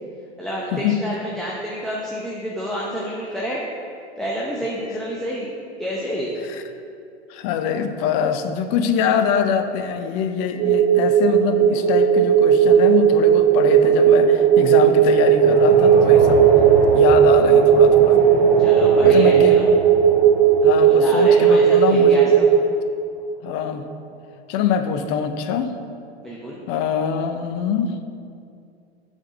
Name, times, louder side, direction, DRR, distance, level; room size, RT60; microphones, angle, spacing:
voice 1, 0.4-3.6 4.2-5.5 5.8-6.3 18.6-19.7 20.8-22.5 26.2-26.6, equal, ahead, -5 dB, 0.8 m, -29 dB
voice 2, 7.3-16.4 16.9-18.2 19.0-19.6 20.6-22.3 23.4-23.9 24.5-25.7 26.7-27.9, left 7 dB, 40° left, 8 dB, 0.7 m, -23 dB
sound 1, 10.6-22.6, right 8 dB, 35° right, 0.5 m, -15 dB
sound 2, 11.3-22.1, right 1 dB, 20° right, 1.9 m, -29 dB
7.1 x 4.5 x 6.5 m, 2.5 s
hypercardioid pair, 100°, 33 cm